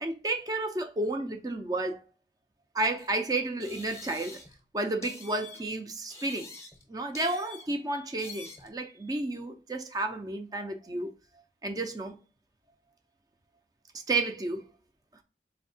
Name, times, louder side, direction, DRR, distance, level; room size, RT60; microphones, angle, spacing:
voice 1, 0.0-2.0 2.7-4.4 4.7-6.5 6.9-11.1 11.6-12.2 14.1-14.6, right 2 dB, 20° right, 0.4 m, -31 dB
sound 1, 3.0-3.1 3.6-4.6 5.0-5.7 6.1-6.9 7.1-7.8 8.2-8.7, left 4 dB, 15° left, 0.7 m, -47 dB
4.2 x 2.8 x 2.6 m
head